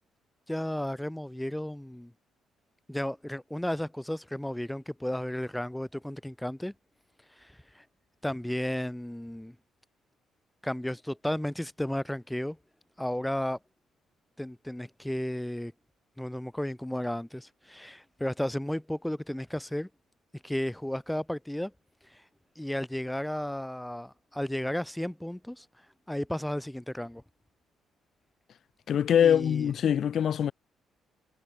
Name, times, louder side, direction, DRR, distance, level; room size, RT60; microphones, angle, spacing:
voice 1, 0.5-2.1 2.9-6.7 7.4-7.8 8.2-9.6 10.6-12.6 13.0-13.6 14.4-15.7 16.2-19.9 20.4-21.7 22.1-22.2 22.6-25.7 26.1-27.2 29.2-29.7, left 1 dB, 5° left, 6.2 m, -33 dB
voice 2, 28.9-30.5, left 9 dB, 60° left, 3.6 m, -23 dB
cardioid pair, 90°, 0 cm